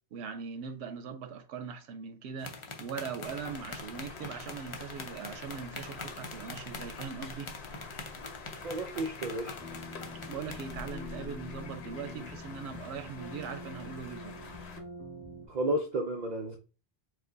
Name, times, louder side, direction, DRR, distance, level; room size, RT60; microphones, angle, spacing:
voice 1, 0.1-7.5 10.3-14.4, right 6 dB, 85° right, 0.8 m, -41 dB
sound 1, 2.4-11.0, left 3 dB, 35° left, 0.6 m, -44 dB
sound 2, 3.2-14.8, left 4 dB, 80° left, 1.1 m, -47 dB
voice 2, 8.6-9.6 15.5-16.6, right 1 dB, 50° right, 0.6 m, -32 dB
sound 3, 9.6-15.5, left 2 dB, 30° right, 1.3 m, -45 dB
4.8 x 2.1 x 3.8 m
omnidirectional pair, 1.1 m